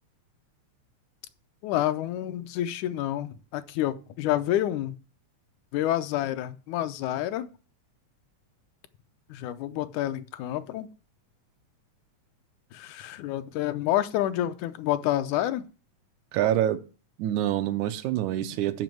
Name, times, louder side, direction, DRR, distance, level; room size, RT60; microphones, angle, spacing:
voice 1, 1.6-5.0 5.7-7.5 9.3-10.9 12.7-15.6, left 13 dB, 80° left, 2.1 m, -28 dB
voice 2, 16.3-16.8 17.2-18.8, right 12 dB, 85° right, 2.1 m, -26 dB
7.2 x 6.1 x 7.7 m
omnidirectional pair, 3.4 m